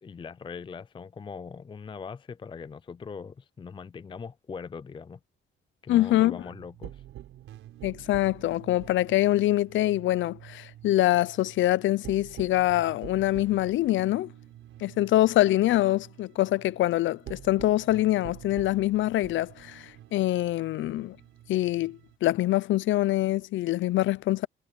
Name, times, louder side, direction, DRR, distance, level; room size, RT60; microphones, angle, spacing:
voice 1, 0.0-5.2 5.8-7.0, left 5 dB, 25° left, 0.4 m, -41 dB
voice 2, 5.9-6.4 7.8-14.3 14.8-21.2 21.5-24.5, left 15 dB, 75° left, 0.6 m, -25 dB
sound 1, 6.4-22.2, right 13 dB, 85° right, 4.7 m, -47 dB
cardioid pair, 90°, 20 cm